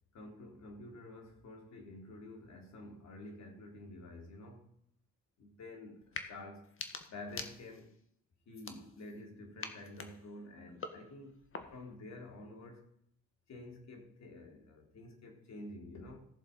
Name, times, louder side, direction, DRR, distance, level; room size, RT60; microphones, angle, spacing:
voice 1, 0.1-4.7 5.4-6.7 7.1-7.9 8.5-11.4 11.7-12.9 13.5-16.3, left 2 dB, 60° left, 2 dB, 3.8 m, -50 dB
sound 1, 6.0-6.3 6.6-8.0 8.5-9.2 9.6-12.0, left 5 dB, 45° left, 1.6 m, -46 dB
16.0 x 7.1 x 5.4 m, 0.69 s
cardioid pair, 90°, 30 cm